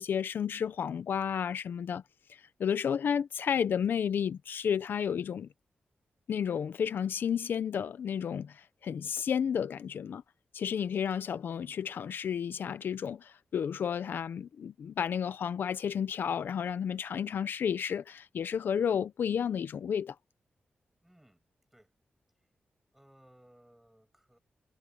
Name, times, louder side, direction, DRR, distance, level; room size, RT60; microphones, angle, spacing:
voice 1, 0.0-2.0 2.3-5.5 6.3-10.2 10.5-20.2, left 8 dB, 80° left, 0.6 m, -32 dB
voice 2, 21.0-21.4 21.7-21.9 22.4-22.5 22.9-24.4, right 1 dB, 5° right, 6.4 m, -61 dB
wide cardioid pair, 150°, 3 cm